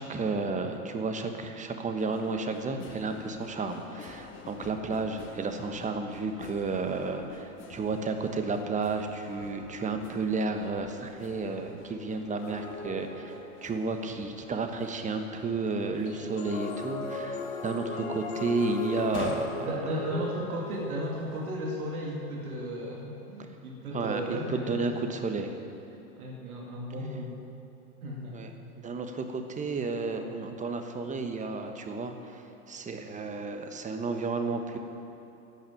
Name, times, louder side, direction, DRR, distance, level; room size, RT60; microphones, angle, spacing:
voice 1, 0.0-13.3 13.6-19.7 23.9-25.5 28.3-28.5 28.8-32.4 32.7-34.8, right 3 dB, 15° right, 6 dB, 1.2 m, -32 dB
sound 1, 2.0-21.5, left 4 dB, 25° left, 1.5 m, -48 dB
sound 2, 12.4-13.7 16.0-21.3, left 3 dB, 65° left, 2.2 m, -37 dB
voice 2, 19.6-24.9 26.2-27.4 28.0-28.5, equal, 75° right, -2 dB, 2.4 m, -35 dB
12.0 x 8.9 x 9.2 m, 2.8 s
hypercardioid pair, 100°, 44 cm